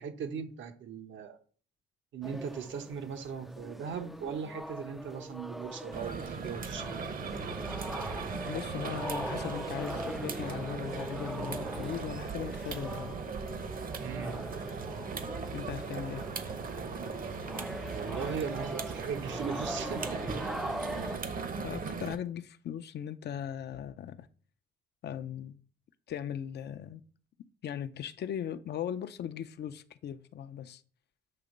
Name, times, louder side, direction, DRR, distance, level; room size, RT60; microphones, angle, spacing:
voice 1, 0.0-1.4 2.1-7.2 14.0-14.4 17.2-17.4 17.9-20.3, right 6 dB, 70° right, 0.9 m, -38 dB
sound 1, 2.2-21.2, equal, ahead, 0.3 m, -41 dB
sound 2, 5.9-22.2, right 5 dB, 45° right, 0.8 m, -38 dB
voice 2, 8.4-13.2 15.5-16.2 21.0-24.3 25.0-25.6 26.1-27.0 27.6-30.8, left 9 dB, 60° left, 0.5 m, -39 dB
7.7 x 2.9 x 5.2 m
cardioid pair, 90°, 20 cm